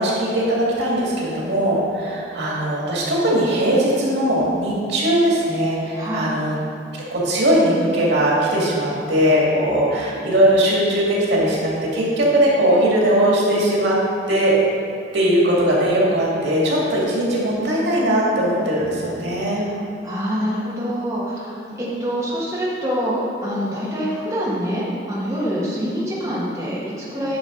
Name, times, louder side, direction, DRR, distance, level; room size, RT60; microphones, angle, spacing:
voice 1, 0.0-6.6 6.9-14.0 14.3-14.6 15.1-19.6 25.6-25.7, right 1 dB, 85° right, -5 dB, 2.1 m, -19 dB
voice 2, 5.9-6.3 20.0-23.1 23.4-27.4, equal, 15° right, -8 dB, 1.4 m, -25 dB
9.3 x 6.2 x 3.8 m, 2.6 s
head